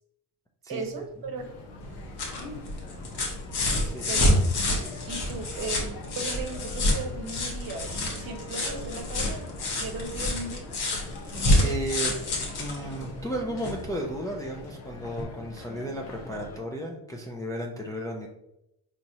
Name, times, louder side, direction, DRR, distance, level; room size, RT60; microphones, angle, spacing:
voice 1, 0.7-1.5 4.1-4.3 5.0-9.5 9.8-10.7, right 3 dB, 50° right, 4 dB, 0.9 m, -37 dB
sound 1, 1.3-16.6, left 2 dB, 85° left, 0.8 m, -43 dB
sound 2, 1.8-13.8 15.2-15.3, left 1 dB, 60° left, 1.2 m, -28 dB
voice 2, 11.6-12.2 12.6-18.3, right 1 dB, 10° left, -1 dB, 0.3 m, -34 dB
4.2 x 3.0 x 2.7 m, 0.85 s
supercardioid pair, 85°, 44 cm